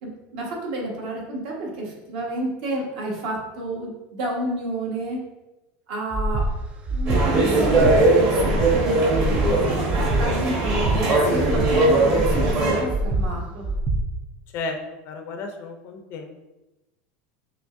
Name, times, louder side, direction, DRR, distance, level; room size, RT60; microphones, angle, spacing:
voice 1, 0.0-5.2 5.9-6.5 6.9-13.6, right 1 dB, 60° right, -2 dB, 1.4 m, -30 dB
Breathing, 6.1-6.5 6.9-7.2 7.6-8.0 8.4-8.7 9.1-9.5 9.9-10.2 10.6-11.0 11.4-11.7 12.1-12.5 12.9-13.2 13.6-14.0, right 2 dB, 20° right, 0.3 m, -24 dB
sound 1, 7.1-12.8, right 2 dB, 35° right, 1.2 m, -20 dB
voice 2, 15.0-16.4, left 3 dB, 35° left, 5 dB, 0.5 m, -33 dB
6.1 x 3.2 x 2.6 m, 1.0 s
supercardioid pair, 165°, 6 cm